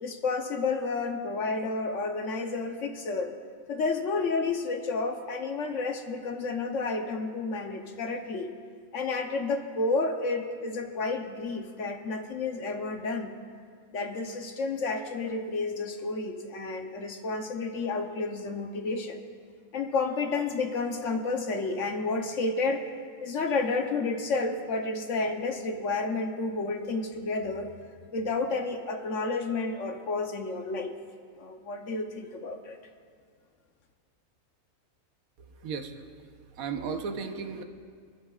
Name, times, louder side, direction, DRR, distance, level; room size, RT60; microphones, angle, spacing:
voice 1, 0.0-3.3 3.7-8.5 8.9-13.3 13.9-19.2 19.7-22.8 23.2-27.7 28.1-30.9 31.4-32.8, left 3 dB, 60° left, 5 dB, 1.2 m, -31 dB
voice 2, 35.5-37.6, right 5 dB, 75° right, 6 dB, 1.3 m, -36 dB
27.0 x 11.0 x 2.4 m, 2.1 s
omnidirectional pair, 1.5 m